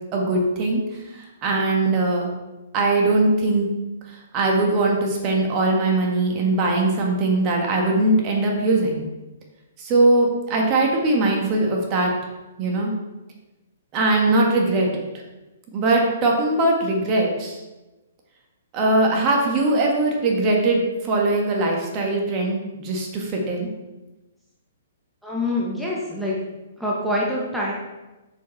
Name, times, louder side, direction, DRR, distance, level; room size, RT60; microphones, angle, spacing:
voice 1, 0.1-2.3 2.7-3.7 4.1-9.1 9.8-12.1 12.6-12.9 13.9-15.0 15.7-17.6 18.7-23.7, right 2 dB, 30° right, -1 dB, 1.8 m, -21 dB
voice 2, 25.2-26.4 26.8-27.7, left 1 dB, ahead, -6 dB, 1.4 m, -25 dB
6.7 x 6.4 x 4.2 m, 1.1 s
hypercardioid pair, 140°, 0 cm